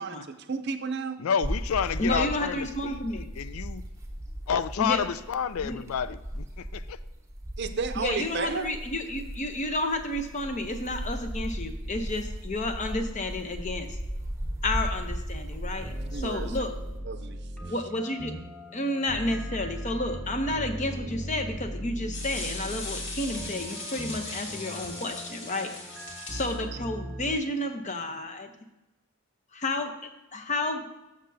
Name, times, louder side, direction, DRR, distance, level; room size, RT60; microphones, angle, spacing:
voice 1, 0.0-1.2 7.6-8.7 16.1-16.6 17.0-17.5, right 4 dB, 50° right, 8 dB, 0.6 m, -32 dB
voice 2, 1.2-3.8 4.5-7.0, left 7 dB, 80° left, 15 dB, 0.4 m, -30 dB
sound 1, 1.4-17.0, equal, 15° right, 0.9 m, -37 dB
voice 3, 2.0-3.3 4.8-5.0 5.6-5.8 8.0-14.0 14.6-16.7 17.7-18.3 18.7-25.7 26.3-28.5 29.5-30.9, left 1 dB, 35° left, 7 dB, 0.7 m, -31 dB
sound 2, 15.8-27.4, equal, 5° left, 1.2 m, -38 dB
sound 3, 22.1-26.6, left 2 dB, 55° left, 1.8 m, -39 dB
13.0 x 6.7 x 2.7 m, 1.0 s
head